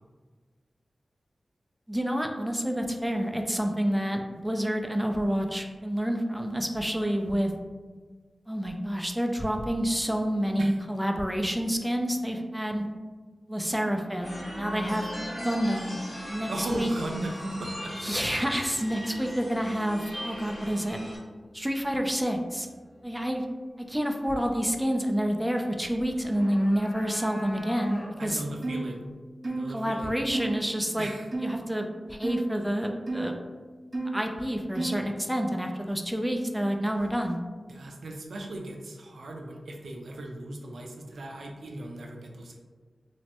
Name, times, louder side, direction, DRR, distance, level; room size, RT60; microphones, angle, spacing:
voice 1, 1.9-7.5 8.5-12.8 13.5-15.1 15.4-16.0 16.3-16.9 18.0-21.0 21.5-22.7 23.0-23.5 23.9-28.4 29.7-31.1 31.4-33.4 34.1-37.4, equal, 5° right, 3 dB, 0.4 m, -28 dB
sound 1, 14.2-21.2, equal, 50° left, 1.5 m, -39 dB
voice 2, 16.5-18.1 28.2-29.0 29.4-30.1 31.0-31.3 37.7-42.6, right 1 dB, 80° right, 1 dB, 0.4 m, -37 dB
sound 2, 26.1-28.4, equal, 80° left, 0.8 m, -41 dB
sound 3, 28.6-28.9 29.4-29.7 30.3-30.5 31.3-31.6 32.2-32.5 33.1-33.3 33.9-34.2 34.8-35.1, right 2 dB, 45° right, 0.7 m, -31 dB
3.0 x 2.1 x 2.8 m, 1.4 s
cardioid pair, 45°, 0 cm